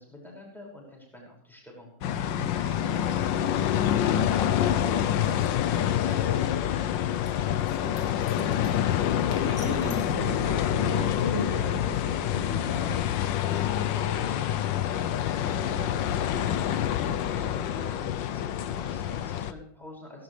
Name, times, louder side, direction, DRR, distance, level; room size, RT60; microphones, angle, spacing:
voice 1, 0.0-7.3 13.5-20.2, left 2 dB, ahead, -2 dB, 5.7 m, -46 dB
sound 1, 2.0-19.5, left 10 dB, 70° left, 1.3 m, -27 dB
sound 2, 5.2-5.5 7.1-10.2, left 3 dB, 55° left, 2.9 m, -50 dB
voice 2, 7.8-8.9 9.3-13.0, left 1 dB, 40° left, -4 dB, 5.1 m, -36 dB
17.0 x 17.0 x 3.3 m, 0.64 s
omnidirectional pair, 2.3 m